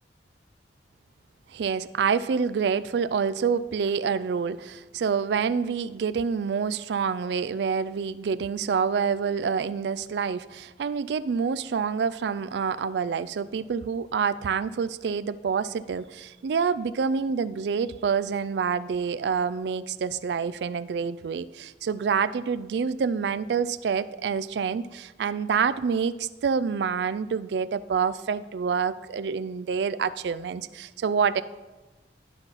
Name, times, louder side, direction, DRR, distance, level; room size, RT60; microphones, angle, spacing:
voice 1, 1.5-31.4, right 6 dB, 65° right, 16 dB, 0.3 m, -27 dB
11.5 x 4.0 x 5.7 m, 1.2 s
head